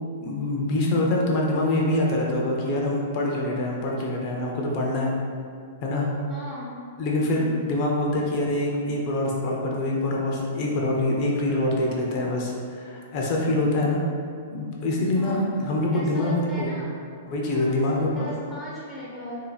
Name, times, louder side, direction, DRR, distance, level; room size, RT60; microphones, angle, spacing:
voice 1, 0.2-5.2 5.8-6.1 7.0-14.0 14.5-16.7 17.3-18.1, left 1 dB, 40° left, -2 dB, 0.7 m, -25 dB
voice 2, 6.3-6.8 7.2-7.6 15.2-15.5 15.9-16.9 17.5-19.4, left 1 dB, ahead, -9 dB, 0.7 m, -38 dB
2.8 x 2.5 x 4.1 m, 2.3 s
hypercardioid pair, 145°, 0 cm